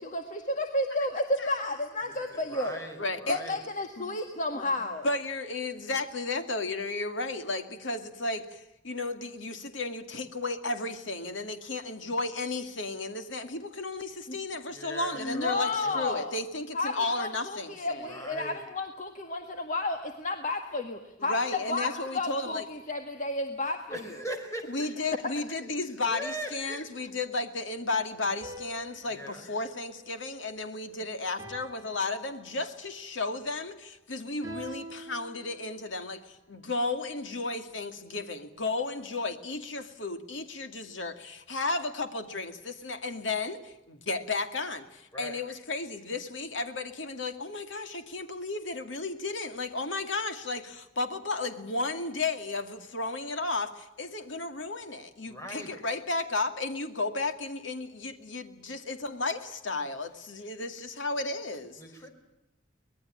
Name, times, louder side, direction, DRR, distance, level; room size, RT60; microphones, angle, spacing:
voice 1, 0.0-2.8 3.3-5.1 14.3-14.4 15.2-16.3 16.7-21.4 21.7-24.2, left 2 dB, 40° left, 5 dB, 1.8 m, -32 dB
voice 2, 2.0-3.6 14.7-15.5 15.7-16.2 18.0-18.7 23.9-24.9 25.6-25.7 26.1-27.0 29.1-29.4 45.1-45.4 55.3-55.8 61.8-62.1, right 1 dB, 15° left, 5 dB, 4.6 m, -41 dB
voice 3, 3.0-3.4 4.0-4.2 5.0-18.1 21.2-22.6 24.7-61.8, left 3 dB, 80° left, 8 dB, 2.3 m, -33 dB
sound 1, 28.4-30.8 31.4-32.9 34.4-36.1, right 1 dB, 15° right, 6.2 m, -47 dB
24.5 x 20.0 x 8.8 m, 0.90 s
head